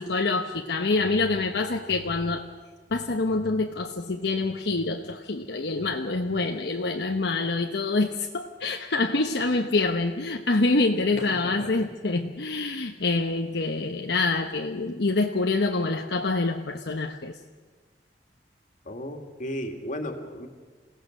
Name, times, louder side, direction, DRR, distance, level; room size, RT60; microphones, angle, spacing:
voice 1, 0.0-2.4 2.9-17.3, left 3 dB, 70° left, 3 dB, 1.0 m, -26 dB
voice 2, 11.3-11.9 18.8-20.5, equal, 45° left, 4 dB, 2.3 m, -35 dB
28.5 x 17.0 x 6.6 m, 1.5 s
head